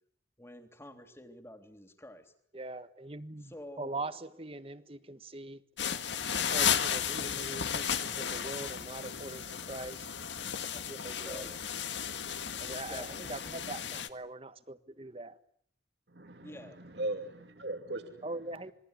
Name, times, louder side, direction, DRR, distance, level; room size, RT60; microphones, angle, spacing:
voice 1, 0.4-2.3 3.5-4.0 7.7-7.9 11.2-11.5 12.6-13.6 16.4-16.8, left 1 dB, 15° left, 3.3 m, -49 dB
voice 2, 2.5-5.6 6.5-10.1 10.7-11.6 12.6-15.4 18.2-18.7, right 2 dB, 30° right, 1.4 m, -42 dB
sound 1, 5.8-14.1, left 8 dB, 85° left, 1.8 m, -34 dB
voice 3, 16.1-18.2, right 2 dB, 70° right, 2.5 m, -39 dB
27.5 x 22.5 x 9.9 m
head